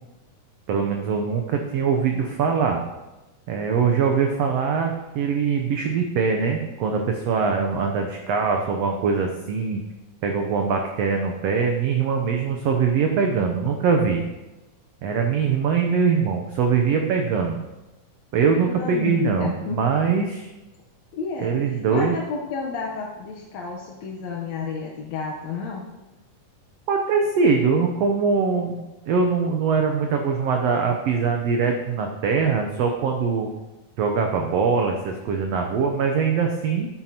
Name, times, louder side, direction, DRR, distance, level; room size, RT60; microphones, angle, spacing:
voice 1, 0.7-2.8 3.5-9.8 10.2-14.2 15.0-17.6 18.3-20.5 21.4-22.1 26.9-33.5 34.0-36.9, right 5 dB, 90° right, 3 dB, 1.4 m, -22 dB
voice 2, 18.6-19.8 21.1-21.5 21.9-25.8, left 4 dB, 70° left, -1 dB, 1.8 m, -30 dB
11.5 x 8.9 x 2.9 m, 1.0 s
omnidirectional pair, 3.9 m